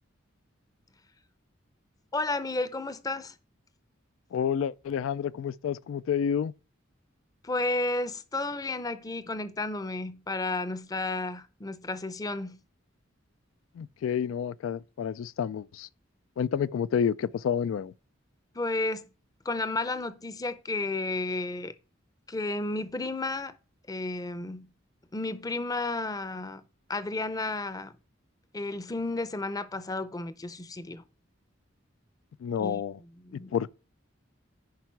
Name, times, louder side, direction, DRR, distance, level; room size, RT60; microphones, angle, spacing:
voice 1, 2.1-3.3 7.4-12.6 18.6-19.1 19.4-21.7 22.3-23.6 23.9-24.7 25.1-26.6 26.9-27.9 28.5-31.0 32.6-32.8 33.3-33.5, left 2 dB, 20° left, 0.6 m, -32 dB
voice 2, 4.3-6.5 13.8-15.9 16.4-17.9 32.4-33.0 33.3-33.7, left 7 dB, 80° left, 0.3 m, -29 dB
10.5 x 4.7 x 4.5 m
head